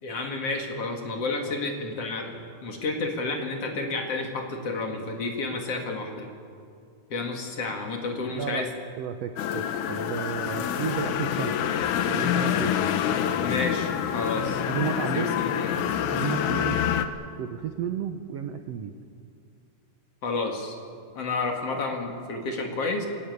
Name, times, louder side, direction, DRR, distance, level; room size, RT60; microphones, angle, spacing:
voice 1, 0.0-6.3 7.1-8.7 13.4-14.6 15.1-15.3 15.5-15.9 20.2-20.7 21.1-23.1, left 3 dB, 45° left, 3 dB, 2.8 m, -30 dB
voice 2, 8.3-8.7 9.0-11.6 12.0-12.7 14.6-15.5 16.1-16.8 17.4-18.9, right 8 dB, 85° right, 7 dB, 1.4 m, -32 dB
sound 1, 9.4-17.1, left 9 dB, 70° left, 2.2 m, -26 dB
22.0 x 17.5 x 9.5 m, 2.5 s
omnidirectional pair, 4.1 m